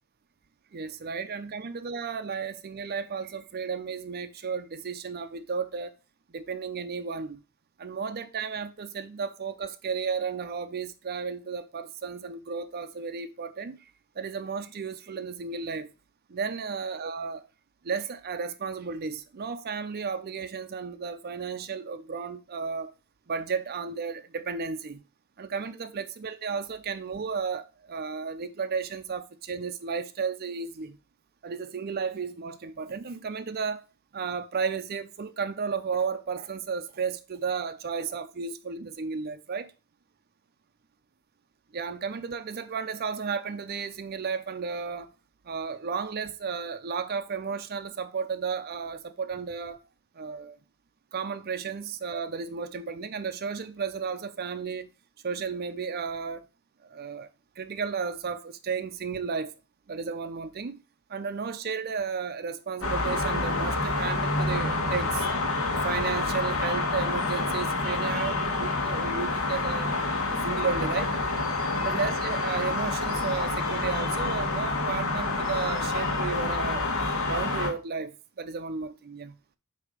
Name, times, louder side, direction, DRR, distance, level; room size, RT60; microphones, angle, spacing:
voice 1, 0.7-5.9 6.3-7.4 7.8-13.8 14.2-15.9 16.3-17.5 17.8-22.9 23.3-25.0 25.4-31.0 31.4-33.8 34.1-39.7 41.7-45.1 45.4-49.8 50.2-50.6 51.1-54.9 55.2-56.4 56.8-57.3 57.6-59.5 59.9-60.8 61.1-65.3 65.7-69.9 70.3-71.1 71.7-76.9 77.2-79.4, right 5 dB, 45° right, 0.5 m, -33 dB
sound 1, 62.8-77.7, left 3 dB, 70° left, 1.5 m, -28 dB
8.0 x 2.8 x 4.9 m
head